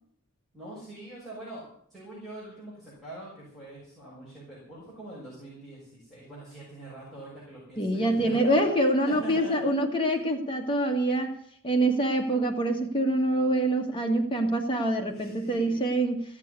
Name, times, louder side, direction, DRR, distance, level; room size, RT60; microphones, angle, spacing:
voice 1, 0.5-1.6 1.9-8.7 9.1-9.7 10.0-10.1 15.1-15.8, right 1 dB, ahead, -9 dB, 6.1 m, -43 dB
voice 2, 7.8-11.4 11.6-16.2, right 1 dB, 25° left, 2 dB, 1.6 m, -25 dB
15.5 x 7.5 x 9.6 m, 0.65 s
head